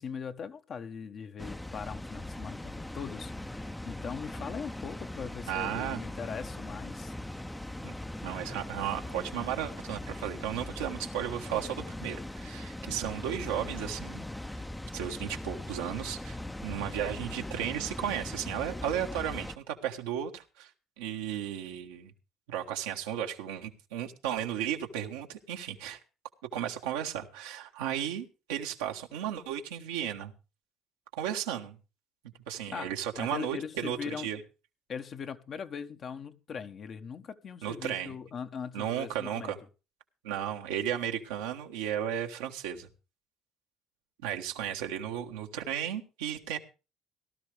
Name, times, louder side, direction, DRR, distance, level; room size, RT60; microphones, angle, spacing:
voice 1, 0.0-7.1 32.7-32.9 33.2-34.3 34.9-39.5, left 6 dB, 50° left, 1.2 m, -40 dB
Water, 1.4-19.6, left 1 dB, 10° left, 0.7 m, -40 dB
voice 2, 5.5-6.0 7.8-7.9 8.2-14.3 14.9-20.7 21.0-22.1 22.5-26.0 26.5-30.3 31.1-31.8 32.5-34.4 37.6-38.1 38.7-39.6 40.2-42.9 44.2-46.6, right 10 dB, 85° right, 1.5 m, -34 dB
17.5 x 12.5 x 3.4 m
hypercardioid pair, 65°, 0 cm